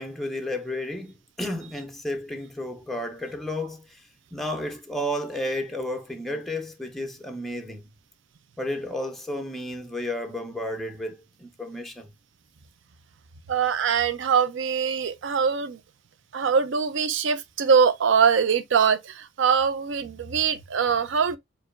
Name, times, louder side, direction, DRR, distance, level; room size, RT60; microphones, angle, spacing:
voice 1, 0.0-4.0 4.3-7.8 8.6-12.1, left 1 dB, ahead, 0.4 m, -32 dB
voice 2, 13.5-15.8 16.3-21.4, right 6 dB, 70° right, 0.5 m, -22 dB
4.7 x 2.5 x 2.4 m
head